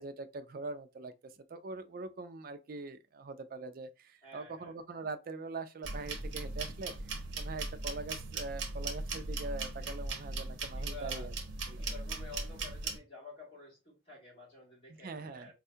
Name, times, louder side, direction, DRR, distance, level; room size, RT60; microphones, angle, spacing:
voice 1, 0.0-11.3 11.7-11.8 14.9-15.5, right 3 dB, 50° right, 0.4 m, -43 dB
voice 2, 4.2-4.7 10.8-11.3 11.8-15.5, left 3 dB, 30° left, 2.1 m, -50 dB
sound 1, 5.8-13.0, right 3 dB, 85° right, 0.7 m, -38 dB
4.2 x 2.3 x 2.6 m
head